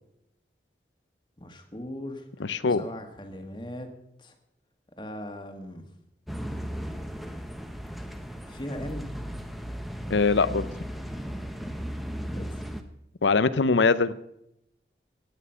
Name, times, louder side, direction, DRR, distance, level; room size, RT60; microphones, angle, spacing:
voice 1, 1.4-2.2 2.7-3.9 4.2-4.3 5.0-5.9 8.4-9.1 12.3-12.6, left 1 dB, 25° left, 5 dB, 1.6 m, -39 dB
voice 2, 2.5-2.8 10.1-10.7 13.2-14.1, left 4 dB, 90° left, 15 dB, 0.7 m, -22 dB
sound 1, 6.3-12.8, equal, ahead, 0.9 m, -36 dB
16.5 x 9.8 x 5.7 m, 0.80 s
head